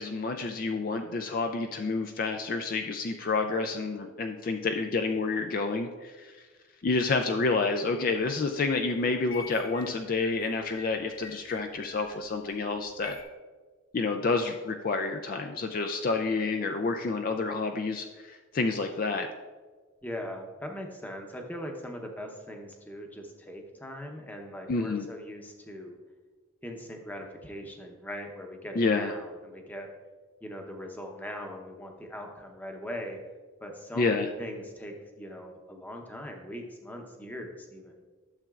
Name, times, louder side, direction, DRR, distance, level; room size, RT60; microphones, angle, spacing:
voice 1, 0.0-6.5 6.8-13.2 13.9-19.3 24.7-25.1 28.8-29.2 34.0-34.3, left 3 dB, 40° left, 5 dB, 0.3 m, -29 dB
sound 1, 8.1-8.2 8.6-13.2, left 4 dB, 60° left, 1.4 m, -47 dB
voice 2, 20.0-26.0 26.6-29.9 30.4-33.2 33.6-38.0, equal, 10° left, 2 dB, 0.8 m, -40 dB
12.0 x 7.1 x 2.4 m, 1.4 s
head